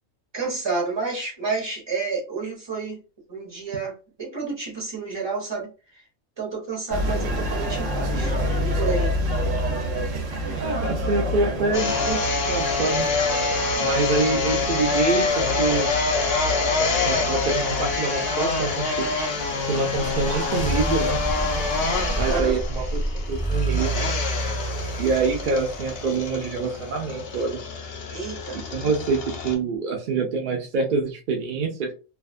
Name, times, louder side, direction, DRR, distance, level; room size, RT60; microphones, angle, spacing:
voice 1, 0.3-3.0 3.3-5.7 6.4-8.3 8.6-9.1 22.3-22.5 28.1-28.6, right 4 dB, 25° right, -1 dB, 0.8 m, -30 dB
sound 1, 6.9-22.4, equal, 90° right, 1.1 m, -29 dB
voice 2, 10.6-12.2 12.5-13.1 13.8-15.9 17.0-19.1 19.7-21.2 22.1-23.0 23.3-24.0 25.0-27.6 28.5-31.9, right 4 dB, 55° right, 1 dB, 0.5 m, -26 dB
sound 2, 11.7-29.5, left 4 dB, 60° left, 0.8 m, -26 dB
sound 3, 20.0-26.9, right 2 dB, 10° left, 0.6 m, -29 dB
2.5 x 2.3 x 2.3 m, 0.32 s
omnidirectional pair, 1.3 m